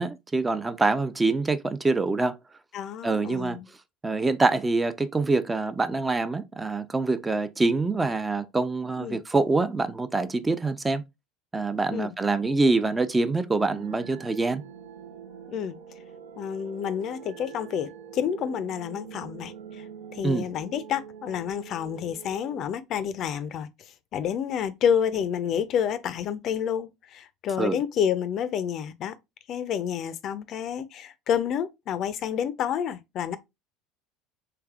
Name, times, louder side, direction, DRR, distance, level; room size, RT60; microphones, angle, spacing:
voice 1, 0.0-2.3 3.0-3.6 4.0-11.0 11.5-14.6 20.2-20.5 27.6-27.8, right 3 dB, 15° right, 0.4 m, -25 dB
voice 2, 2.7-3.7 9.0-9.2 11.9-12.1 15.5-15.8 16.4-19.8 20.1-23.7 24.1-29.1 29.5-33.4, left 8 dB, 50° left, 0.4 m, -29 dB
sound 1, 13.6-22.7, right 7 dB, 75° right, 0.5 m, -44 dB
3.3 x 3.1 x 2.3 m
hypercardioid pair, 75°, 0 cm